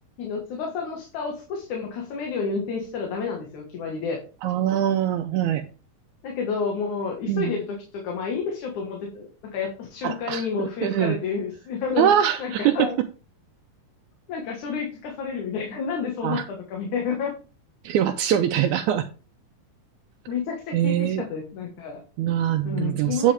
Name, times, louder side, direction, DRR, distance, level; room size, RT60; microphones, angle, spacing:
voice 1, 0.2-4.2 6.2-12.1 12.4-13.0 14.3-17.3 20.3-22.0 22.6-23.3, left 5 dB, 65° left, 1 dB, 2.8 m, -30 dB
voice 2, 4.4-5.6 7.3-7.5 10.0-10.5 10.8-11.2 12.0-12.9 16.2-16.5 17.8-19.1 20.7-21.2 22.2-23.3, right 10 dB, 85° right, 7 dB, 1.7 m, -23 dB
8.9 x 7.3 x 3.3 m, 0.35 s
omnidirectional pair, 4.0 m